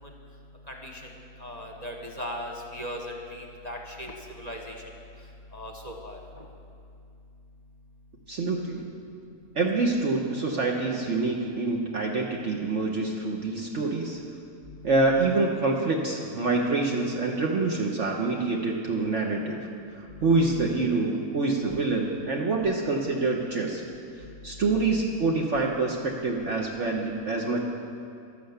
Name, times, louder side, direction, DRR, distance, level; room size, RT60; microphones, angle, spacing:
voice 1, 0.7-1.0 1.4-4.1 4.4-4.7 5.5-6.2, equal, 30° left, 1 dB, 1.2 m, -37 dB
voice 2, 8.3-8.9 9.5-14.2 14.8-19.6 19.9-23.8 24.4-27.6, right 3 dB, 55° right, 0 dB, 1.3 m, -26 dB
12.5 x 11.5 x 8.0 m, 2.5 s
omnidirectional pair, 1.6 m